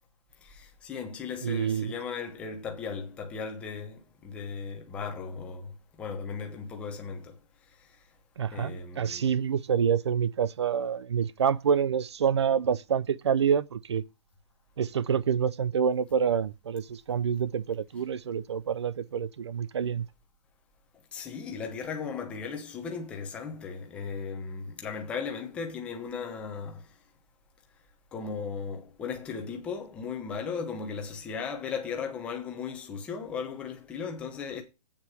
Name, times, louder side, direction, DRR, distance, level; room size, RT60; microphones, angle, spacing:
voice 1, 0.4-5.7 6.0-7.3 8.5-9.3 21.1-26.8 28.1-34.6, left 5 dB, 5° left, 0.9 m, -36 dB
voice 2, 1.4-1.9 8.4-14.0 14.8-20.1, right 7 dB, 45° right, 0.6 m, -27 dB
8.4 x 7.2 x 4.8 m
hypercardioid pair, 180°, 20 cm